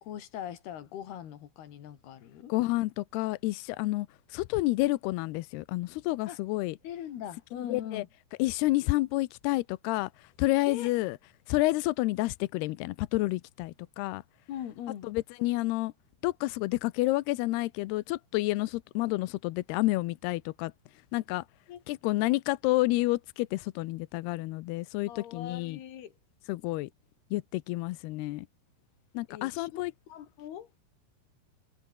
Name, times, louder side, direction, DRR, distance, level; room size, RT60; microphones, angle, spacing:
voice 1, 0.0-2.5 6.3-6.4 6.8-8.1 10.7-10.9 14.5-15.1 21.7-21.8 25.1-26.1 29.3-30.7, left 10 dB, 60° left, 4.0 m, -41 dB
voice 2, 2.5-6.8 7.6-8.0 8.4-11.2 11.5-14.2 15.0-15.9 16.2-20.7 21.1-21.4 21.9-25.8 26.5-26.9 27.3-28.5 29.1-29.9, left 19 dB, 80° left, 2.4 m, -29 dB
omnidirectional pair, 5.3 m